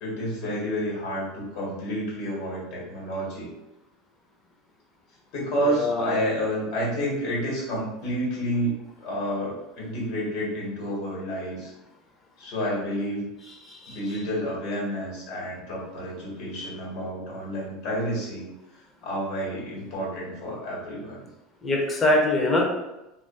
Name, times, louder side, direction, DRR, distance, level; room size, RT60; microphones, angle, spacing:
voice 1, 0.0-3.5 5.3-11.7 12.4-13.3 13.9-18.4 19.0-21.3, equal, 60° left, -5 dB, 1.4 m, -30 dB
voice 2, 5.7-6.1 13.7-14.0 21.6-22.7, left 2 dB, 20° left, -1 dB, 0.6 m, -23 dB
2.5 x 2.4 x 2.3 m, 0.93 s
supercardioid pair, 130°, 0 cm